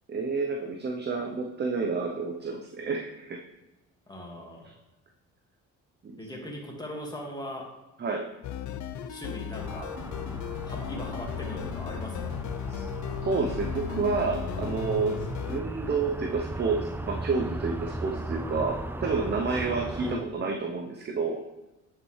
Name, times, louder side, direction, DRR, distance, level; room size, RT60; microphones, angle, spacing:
voice 1, 0.1-3.4 6.0-6.2 8.0-8.3 12.7-12.8 13.2-21.4, right 4 dB, 35° right, 2 dB, 0.8 m, -30 dB
voice 2, 4.1-4.7 6.2-7.7 9.1-10.1 10.7-12.4 20.0-20.2, left 1 dB, 15° left, -1 dB, 2.0 m, -39 dB
sound 1, 8.4-15.6, left 9 dB, 70° left, 0.6 m, -36 dB
sound 2, 9.6-20.2, right 2 dB, 5° right, 0.3 m, -37 dB
9.3 x 5.5 x 3.2 m, 1.0 s
cardioid pair, 90°, 30 cm